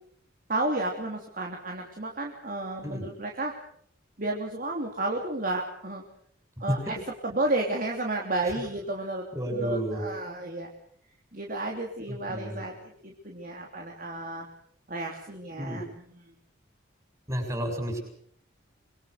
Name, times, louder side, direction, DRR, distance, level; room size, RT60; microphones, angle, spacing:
voice 1, 0.5-3.6 4.2-6.0 6.6-6.9 7.3-9.3 9.5-10.7 11.3-14.5 14.9-15.9 16.1-16.3, right 2 dB, 45° right, 1 dB, 3.1 m, -32 dB
voice 2, 9.3-10.1 12.1-12.6 15.6-15.9 17.3-18.0, equal, 15° right, 4 dB, 7.2 m, -31 dB
25.5 x 22.5 x 6.6 m, 0.64 s
head